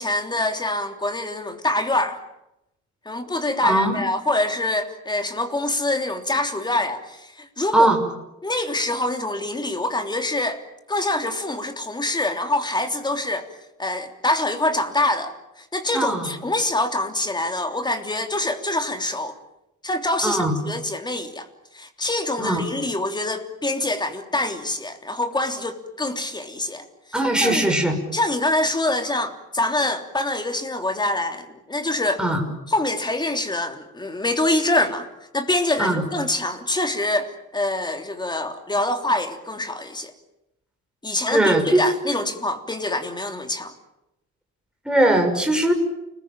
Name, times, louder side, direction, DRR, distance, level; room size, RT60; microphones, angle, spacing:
voice 1, 0.0-2.2 3.1-7.9 8.4-10.6 10.9-13.5 13.8-19.4 19.8-21.5 21.7-26.8 27.4-27.7 28.1-32.2 32.7-35.1 35.3-40.1 41.0-43.7, left 2 dB, 15° left, 3.3 m, -25 dB
voice 2, 3.6-4.1 7.7-8.0 15.9-16.3 20.2-20.6 22.4-22.6 27.1-28.0 32.2-32.5 35.8-36.0 41.3-41.8 44.8-45.7, right 1 dB, 5° right, 6.3 m, -20 dB
29.5 x 21.0 x 9.0 m
cardioid pair, 140°, 30 cm